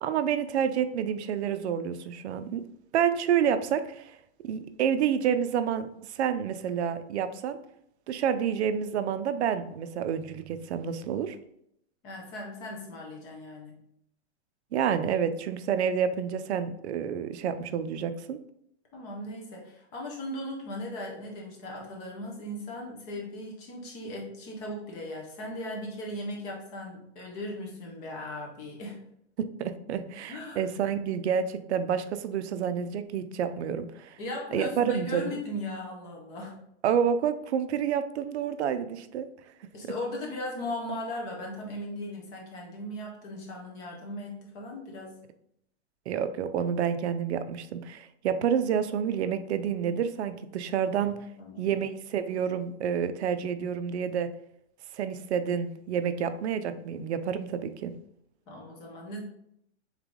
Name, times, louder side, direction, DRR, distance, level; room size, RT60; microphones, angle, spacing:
voice 1, 0.0-2.6 2.9-4.2 4.4-7.6 8.1-11.4 14.7-18.4 29.4-34.2 34.5-35.4 36.8-39.3 46.1-51.2 51.6-54.3 54.9-57.9, right 8 dB, 70° right, 11 dB, 0.5 m, -29 dB
voice 2, 12.0-13.8 18.9-29.0 30.3-30.6 34.2-36.6 39.7-45.2 51.4-51.7 58.5-59.2, left 1 dB, 10° left, -1 dB, 0.3 m, -38 dB
3.5 x 3.3 x 3.7 m, 0.74 s
hypercardioid pair, 155°, 35 cm